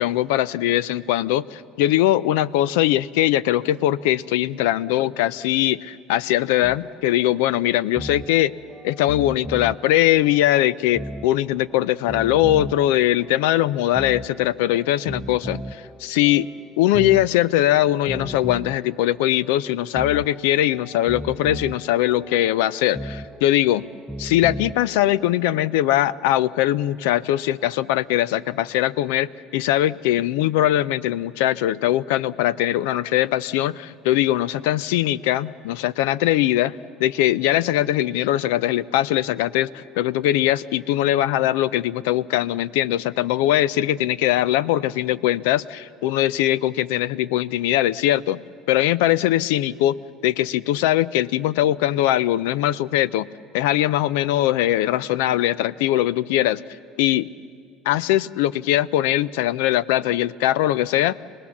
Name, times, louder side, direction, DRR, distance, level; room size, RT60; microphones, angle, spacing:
voice 1, 0.0-8.5 8.8-16.5 16.8-23.8 24.2-48.4 48.7-50.0 50.2-53.3 53.5-56.6 57.0-57.3 57.9-61.2, left 13 dB, 90° left, 20 dB, 0.4 m, -21 dB
sound 1, 6.6-25.7, equal, 5° left, 0.5 m, -37 dB
sound 2, 36.4-42.5, left 2 dB, 50° left, 4.8 m, -54 dB
25.5 x 19.0 x 7.2 m, 2.3 s
supercardioid pair, 120°, 0 cm